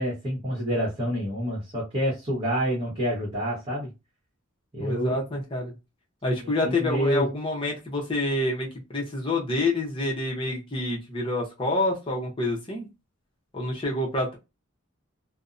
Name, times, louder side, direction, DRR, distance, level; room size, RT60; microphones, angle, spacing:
voice 1, 0.0-3.9 4.7-5.2 6.4-7.3, equal, 30° right, 0.9 m, -28 dB
voice 2, 4.8-5.7 6.2-12.9 13.5-14.4, left 2 dB, 25° left, 0.6 m, -27 dB
2.5 x 2.0 x 2.4 m
head